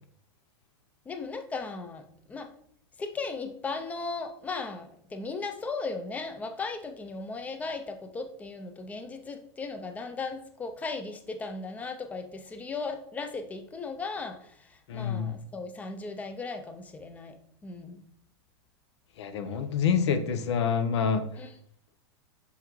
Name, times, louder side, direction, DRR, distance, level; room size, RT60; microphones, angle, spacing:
voice 1, 1.1-2.0 2.3-2.5 3.0-14.4 14.9-17.3 17.6-18.0 21.4-21.5, left 4 dB, 10° left, 7 dB, 0.4 m, -36 dB
voice 2, 14.9-15.3 19.2-21.2, left 6 dB, 85° left, 10 dB, 0.8 m, -27 dB
5.7 x 5.6 x 3.0 m, 0.66 s
supercardioid pair, 160°, 14 cm